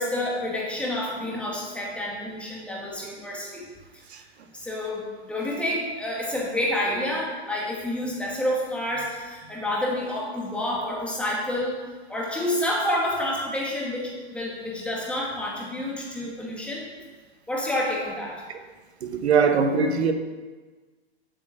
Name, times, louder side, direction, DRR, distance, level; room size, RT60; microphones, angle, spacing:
voice 1, 0.0-3.7 4.1-4.2 4.5-11.8 12.1-16.9 17.5-18.4, left 1 dB, 5° left, 2.1 m, -29 dB
voice 2, 19.0-20.1, right 5 dB, 80° right, 1.1 m, -22 dB
8.3 x 5.9 x 7.8 m
hypercardioid pair, 140°, 32 cm